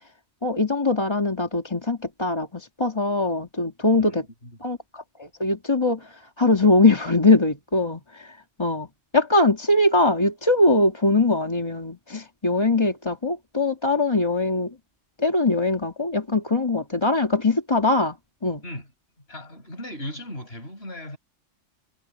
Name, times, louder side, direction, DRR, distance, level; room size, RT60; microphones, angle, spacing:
voice 1, 0.4-4.2 4.6-6.0 6.4-8.3 8.6-8.9 9.1-14.7 15.2-18.2 18.4-18.6, left 2 dB, 20° left, 2.0 m, -21 dB
voice 2, 4.0-4.6 18.6-18.9 19.3-21.2, left 1 dB, 55° left, 6.9 m, -37 dB
omnidirectional pair, 1.3 m